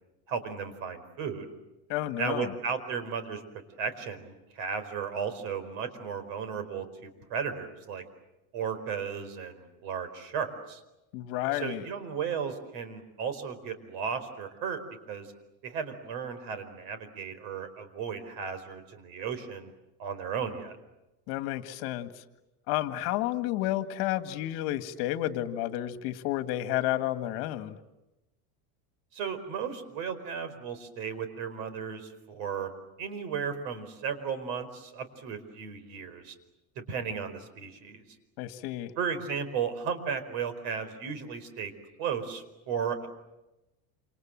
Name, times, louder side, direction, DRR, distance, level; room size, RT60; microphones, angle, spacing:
voice 1, 0.3-1.5 2.2-3.4 3.8-8.0 8.5-10.8 11.5-14.8 15.1-15.3 15.6-19.7 20.0-20.8 29.1-32.7 33.0-36.3 36.9-38.0 39.0-41.7 42.0-43.1, right 6 dB, 60° right, 11 dB, 4.8 m, -35 dB
voice 2, 1.9-2.5 11.1-11.9 21.3-22.2 22.7-27.8 38.4-38.9, left 14 dB, 55° left, 9 dB, 2.0 m, -31 dB
28.0 x 27.5 x 7.7 m, 0.97 s
supercardioid pair, 155°, 44 cm